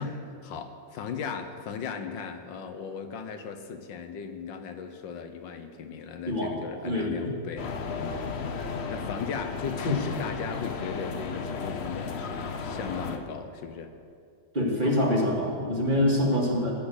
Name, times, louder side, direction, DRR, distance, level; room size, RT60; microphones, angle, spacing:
voice 1, 0.0-13.9 16.0-16.2, left 6 dB, 85° left, 7 dB, 1.7 m, -37 dB
voice 2, 6.8-7.2 9.9-10.0 14.5-16.7, left 1 dB, 25° right, -2 dB, 2.0 m, -25 dB
sound 1, 7.6-13.2, left 5 dB, 50° left, 0.8 m, -34 dB
16.5 x 6.3 x 8.0 m, 2.3 s
omnidirectional pair, 2.0 m